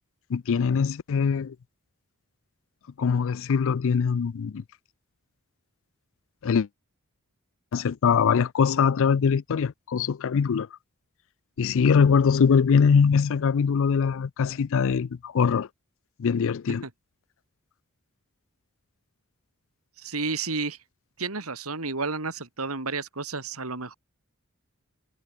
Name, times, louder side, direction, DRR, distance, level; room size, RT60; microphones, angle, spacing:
voice 1, 0.3-1.5 3.0-4.6 6.4-6.7 7.7-10.7 11.6-15.7 16.2-16.8, left 6 dB, 60° left, 0.4 m, -22 dB
voice 2, 20.0-20.8 21.2-23.9, right 4 dB, 70° right, 3.0 m, -31 dB
head